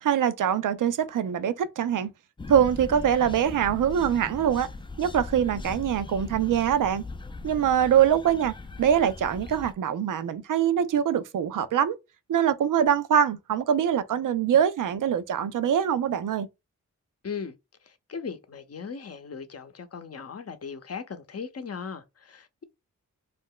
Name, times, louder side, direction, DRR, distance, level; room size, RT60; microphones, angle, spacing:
voice 1, 0.0-2.1 2.5-4.7 5.0-7.0 7.4-12.0 12.3-16.5, right 9 dB, 70° right, 0.5 m, -23 dB
sound 1, 2.4-9.7, left 3 dB, 15° left, 0.4 m, -39 dB
voice 2, 17.2-17.5 17.8-22.6, left 6 dB, 45° left, 0.7 m, -38 dB
2.5 x 2.2 x 3.7 m
cardioid pair, 45°, 33 cm